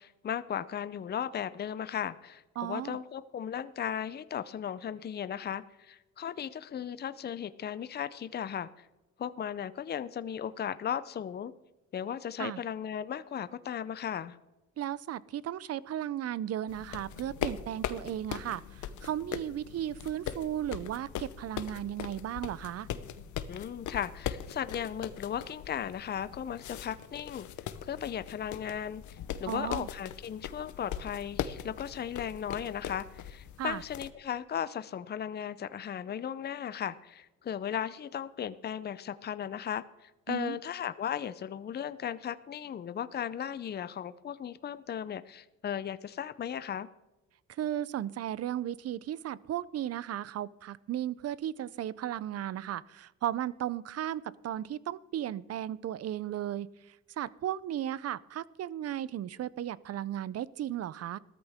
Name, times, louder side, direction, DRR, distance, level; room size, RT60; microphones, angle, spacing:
voice 1, 0.0-8.7 9.2-11.5 11.9-14.4 23.5-27.5 27.8-46.9, left 9 dB, 35° left, 14 dB, 0.6 m, -36 dB
voice 2, 2.6-3.0 12.4-12.6 14.8-22.9 29.5-29.9 33.6-33.8 40.3-40.6 47.6-56.7 57.2-61.2, right 11 dB, 55° right, 20 dB, 0.5 m, -35 dB
sound 1, 16.7-34.1, left 10 dB, 75° left, 0.8 m, -40 dB
15.5 x 13.5 x 3.5 m, 1.0 s
cardioid pair, 90°, 30 cm